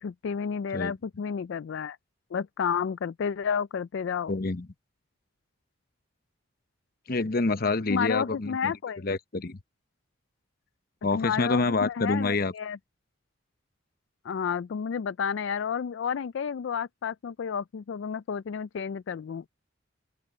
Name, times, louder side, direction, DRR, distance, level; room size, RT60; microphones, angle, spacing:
voice 1, 0.0-2.0 2.3-4.4 7.9-9.0 11.1-12.8 14.2-19.4, left 7 dB, 65° left, 0.3 m, -31 dB
voice 2, 4.3-4.7 7.1-8.7 9.0-9.6 11.0-12.5, left 3 dB, 50° left, 0.9 m, -27 dB
open air
head